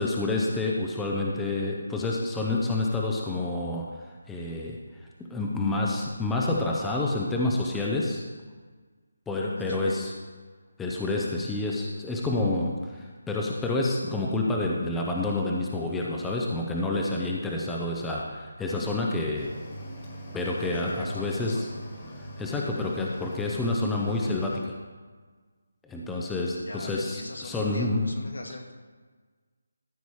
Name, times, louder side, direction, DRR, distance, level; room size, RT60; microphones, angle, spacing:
voice 1, 0.0-3.9 4.3-4.8 5.3-8.2 9.3-10.1 10.8-19.5 20.3-21.7 22.2-24.7 25.9-28.1, left 2 dB, 5° left, -3 dB, 0.6 m, -28 dB
voice 2, 9.5-10.1 12.5-12.6 20.7-21.7 26.6-28.7, left 2 dB, 75° left, 1 dB, 2.3 m, -40 dB
Cricket / Waves surf, 19.4-24.6, equal, 20° left, 1.5 m, -42 dB
13.5 x 7.0 x 4.7 m, 1.4 s
hypercardioid pair, 180°, 0 cm